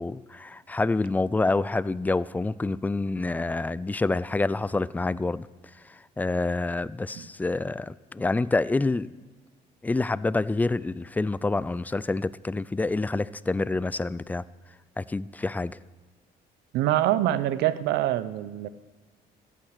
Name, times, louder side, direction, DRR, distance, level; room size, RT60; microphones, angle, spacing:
voice 1, 0.0-5.5 5.8-9.2 9.8-14.4 15.0-15.8, left 3 dB, 10° left, 18 dB, 0.3 m, -27 dB
voice 2, 16.7-18.7, right 13 dB, 85° right, 15 dB, 0.7 m, -25 dB
14.5 x 9.2 x 6.5 m, 1.4 s
cardioid pair, 110°, 17 cm